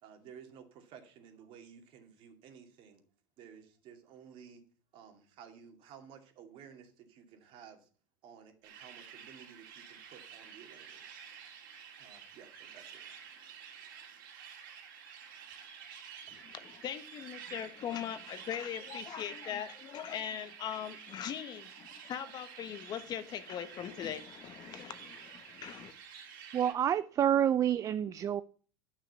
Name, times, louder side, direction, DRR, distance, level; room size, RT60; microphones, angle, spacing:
voice 1, 0.0-3.0 3.4-4.6 4.9-7.9 8.2-11.2 12.0-13.0, right 7 dB, 50° right, 2.5 m, -54 dB
sound 1, 8.6-26.7, right 7 dB, 75° right, 3.3 m, -50 dB
voice 2, 16.3-25.9, left 9 dB, 40° left, 1.2 m, -40 dB
voice 3, 26.5-28.4, right 10 dB, 30° right, 0.4 m, -28 dB
9.8 x 6.2 x 7.0 m
supercardioid pair, 110°, 11 cm